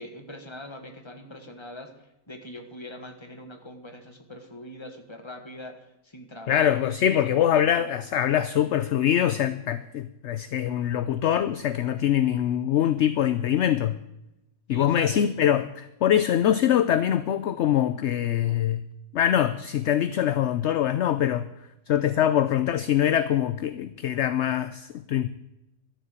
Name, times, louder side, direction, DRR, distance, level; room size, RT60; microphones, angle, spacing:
voice 1, 0.0-6.9 7.2-7.9 14.7-15.3, left 1 dB, 20° left, 1.7 m, -42 dB
voice 2, 6.5-14.0 14.7-18.8 19.1-21.5 21.9-25.3, left 10 dB, 60° left, 0.8 m, -23 dB
12.5 x 7.4 x 8.3 m
omnidirectional pair, 1.5 m